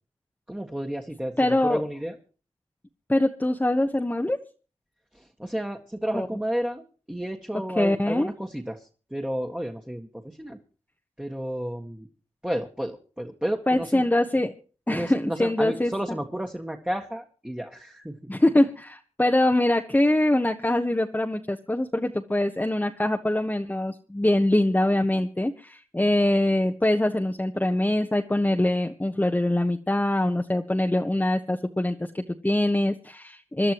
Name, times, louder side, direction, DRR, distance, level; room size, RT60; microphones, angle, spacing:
voice 1, 0.5-1.4 1.6-2.2 5.1-6.8 7.1-10.6 11.2-12.1 12.4-14.1 14.9-18.3, equal, 10° right, 2 dB, 1.7 m, -32 dB
voice 2, 1.4-1.8 3.1-4.4 6.1-6.3 7.8-8.3 13.7-14.5 14.9-15.9 18.3-33.7, left 1 dB, 15° left, 4 dB, 1.1 m, -23 dB
26.0 x 11.5 x 3.0 m, 0.36 s
cardioid pair, 45°, 11 cm